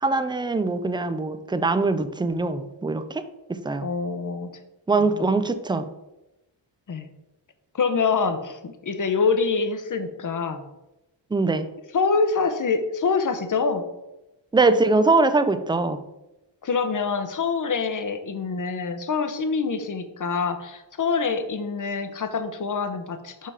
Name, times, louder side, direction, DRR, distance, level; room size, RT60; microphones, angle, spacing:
voice 1, 0.0-3.2 3.5-3.9 4.9-5.8 11.3-11.7 14.5-16.0, right 3 dB, 10° right, 10 dB, 0.3 m, -22 dB
voice 2, 3.8-4.5 5.2-5.3 6.9-7.1 7.7-10.6 11.9-13.8 16.6-23.5, left 4 dB, 45° left, 9 dB, 0.8 m, -25 dB
5.7 x 5.5 x 4.8 m, 0.97 s
wide cardioid pair, 140°, 45 cm